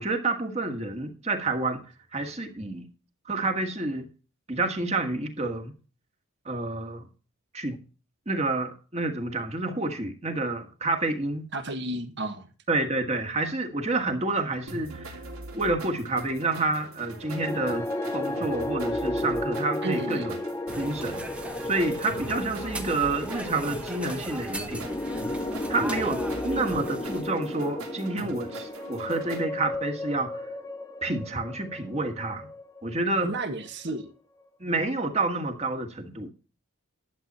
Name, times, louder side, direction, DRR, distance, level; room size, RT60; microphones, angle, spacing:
voice 1, 0.0-1.8 2.1-2.9 3.3-4.1 4.5-5.7 6.5-7.1 7.5-7.8 8.3-11.5 12.7-15.2 15.5-17.9 18.1-20.4 20.8-21.2 21.6-24.8 25.7-30.4 31.0-32.5 32.8-33.3 34.6-36.3, right 2 dB, 30° right, 1.8 m, -29 dB
voice 2, 11.5-12.5 19.8-20.3 33.2-34.1, right 2 dB, 50° right, 1.7 m, -32 dB
sound 1, 14.7-29.4, right 2 dB, 80° right, 3.1 m, -42 dB
sound 2, 17.2-33.5, left 1 dB, 15° left, 0.7 m, -34 dB
sound 3, 20.7-27.2, right 1 dB, 5° right, 1.2 m, -38 dB
11.5 x 8.3 x 4.3 m
head